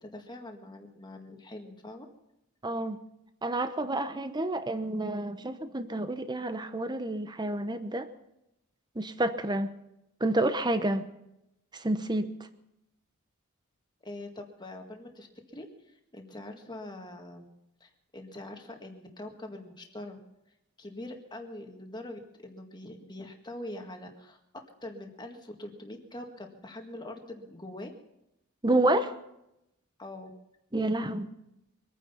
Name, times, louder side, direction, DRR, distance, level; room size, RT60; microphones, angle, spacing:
voice 1, 0.0-2.1 14.0-17.4 17.8-20.2 20.8-24.4 24.8-27.9 30.0-30.3, left 1 dB, 20° left, 3 dB, 1.9 m, -43 dB
voice 2, 2.6-3.0 3.4-8.1 8.9-9.7 10.2-11.1 11.7-12.3 28.6-29.1 30.7-31.3, right 1 dB, 20° right, 10 dB, 0.9 m, -29 dB
24.0 x 9.6 x 5.6 m, 0.84 s
head